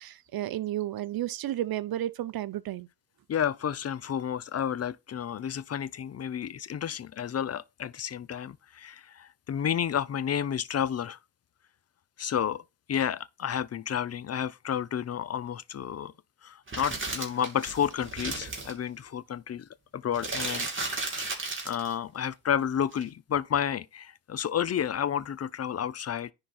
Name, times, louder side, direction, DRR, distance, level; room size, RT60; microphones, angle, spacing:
voice 1, 0.0-2.9, right 13 dB, 55° right, 0.6 m, -32 dB
voice 2, 3.3-11.2 12.2-12.6 12.9-16.1 16.4-19.7 19.9-21.2 21.6-26.3, left 9 dB, 35° left, 0.5 m, -31 dB
sound 1, 16.7-18.7 20.1-21.9 22.9-23.0, right 3 dB, 30° right, 2.6 m, -34 dB
10.0 x 3.9 x 4.2 m
cardioid pair, 100°, 43 cm